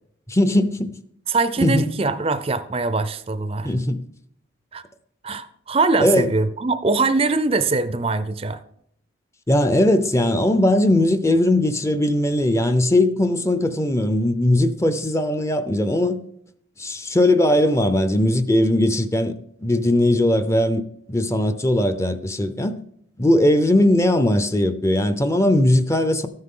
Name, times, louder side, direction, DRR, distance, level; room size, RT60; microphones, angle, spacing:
voice 1, 0.3-1.0 1.6-1.9 3.6-4.0 6.0-6.3 9.5-16.2 16.8-22.8 23.2-26.3, left 1 dB, 15° left, 0.6 m, -19 dB
voice 2, 1.3-3.7 4.7-4.8 5.2-8.6, right 3 dB, 30° right, 0.5 m, -22 dB
13.5 x 9.7 x 3.8 m
head